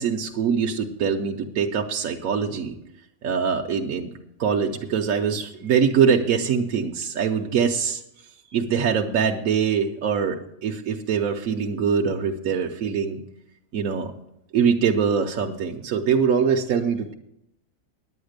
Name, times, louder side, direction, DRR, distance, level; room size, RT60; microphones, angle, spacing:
voice 1, 0.0-2.7 3.2-4.1 4.4-8.0 8.5-13.2 13.7-14.1 14.5-17.1, right 6 dB, 75° right, 3 dB, 1.2 m, -23 dB
9.5 x 9.5 x 6.5 m, 0.82 s
omnidirectional pair, 1.5 m